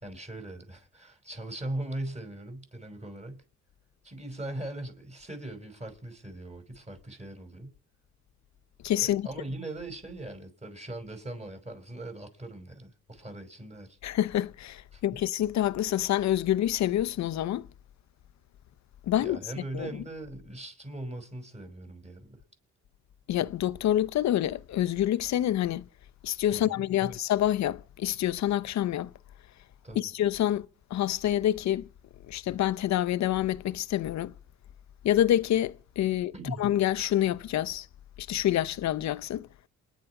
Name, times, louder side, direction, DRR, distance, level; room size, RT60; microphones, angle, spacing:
voice 1, 0.0-3.4 4.0-7.7 9.0-14.0 14.9-15.2 19.2-22.4 26.5-27.2 29.8-30.1 36.1-36.7, right 1 dB, 20° right, 5.5 m, -40 dB
voice 2, 8.8-9.3 14.0-17.7 19.0-19.4 19.7-19.9 23.3-25.8 26.2-29.1 29.9-30.7 30.9-31.8 32.3-34.3 35.0-37.9 38.2-39.5, left 12 dB, 65° left, 0.8 m, -27 dB
28.0 x 10.5 x 4.9 m
cardioid pair, 90°, 30 cm